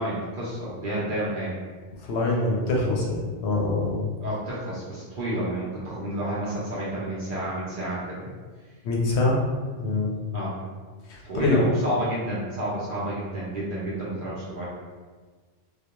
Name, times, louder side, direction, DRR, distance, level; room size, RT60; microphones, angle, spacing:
voice 1, 0.0-1.5 4.2-8.3 10.3-10.6 11.2-14.6, right 1 dB, 60° right, -7 dB, 0.6 m, -30 dB
voice 2, 2.0-4.0 8.8-9.4 9.8-10.1 11.1-11.6, left 2 dB, 70° left, -2 dB, 0.8 m, -24 dB
2.3 x 2.2 x 2.9 m, 1.4 s
omnidirectional pair, 1.3 m